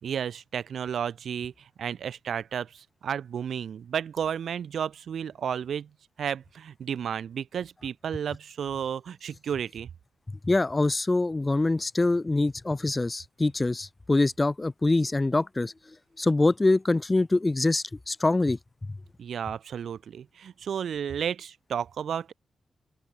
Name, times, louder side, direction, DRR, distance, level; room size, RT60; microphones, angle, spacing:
voice 1, 0.0-5.9 6.2-9.9 19.2-22.3, right 8 dB, 70° right, 1.5 m, -32 dB
voice 2, 10.4-15.7 16.2-18.6, left 2 dB, 20° left, 0.7 m, -24 dB
open air
wide cardioid pair, 125°, 0 cm